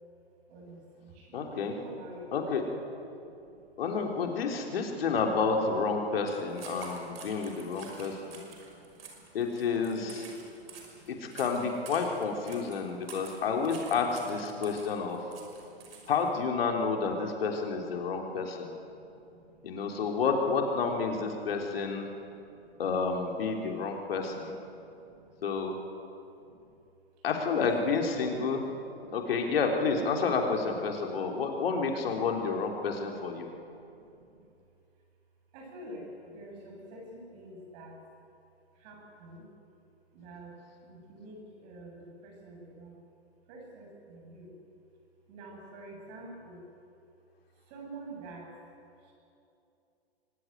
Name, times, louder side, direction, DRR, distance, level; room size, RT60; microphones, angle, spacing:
voice 1, 0.5-2.3 3.3-3.7 6.8-9.3 9.8-11.1 13.1-13.2 14.6-14.7 15.5-16.1 18.1-18.2 18.4-18.5 18.9-19.7 20.4-20.9 22.1-22.8 24.7-25.5 26.4-26.7 27.5-28.4 28.8-29.2 31.1-31.2 33.6-34.5 35.5-38.0 38.7-39.4 40.1-40.5 40.8-43.0 43.5-44.5 45.3-46.6 47.7-48.5 49.0-49.1, right 2 dB, 40° right, 1 dB, 7.8 m, -49 dB
voice 2, 1.3-1.8 2.3-2.6 3.8-8.4 9.3-10.2 11.1-15.2 16.1-18.7 19.6-22.1 22.8-24.5 25.4-25.7 27.2-28.6 29.1-33.5, left 5 dB, 60° left, 2 dB, 3.8 m, -30 dB
sound 1, 6.3-16.3, right 4 dB, 60° right, 5.9 m, -49 dB
23.5 x 19.0 x 9.2 m, 2.7 s
figure-of-eight pair, 120°, 33 cm